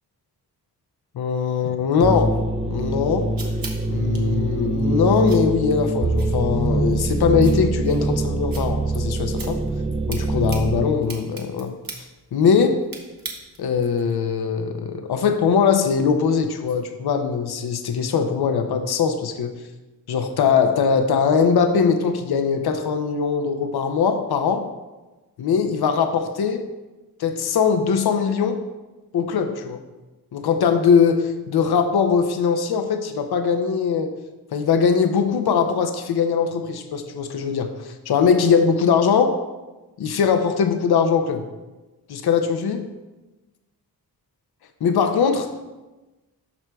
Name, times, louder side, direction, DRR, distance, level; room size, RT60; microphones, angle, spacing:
voice 1, 1.1-2.4 2.6-3.3 3.9-9.6 10.1-12.8 13.6-19.5 20.1-24.6 25.4-26.6 27.2-28.6 29.1-29.8 30.3-34.1 34.5-39.3 40.0-41.4 42.1-42.8 44.8-45.5, left 6 dB, 70° left, 6 dB, 0.6 m, -21 dB
sound 1, 2.0-10.9, right 2 dB, 15° right, 0.3 m, -23 dB
sound 2, 2.8-13.8, right 4 dB, 60° right, 1.1 m, -42 dB
12.5 x 4.4 x 2.3 m, 1.1 s
wide cardioid pair, 95°, 39 cm